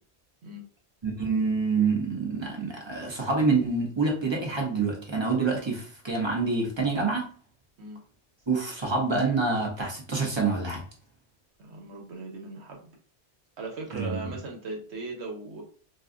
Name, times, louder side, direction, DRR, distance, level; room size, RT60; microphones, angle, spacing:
voice 1, 1.0-7.3 8.5-10.8 13.9-14.2, right 4 dB, 25° right, 0.9 m, -27 dB
voice 2, 11.6-12.9 13.6-15.6, right 3 dB, 75° right, 1.2 m, -38 dB
2.6 x 2.3 x 3.8 m
omnidirectional pair, 1.1 m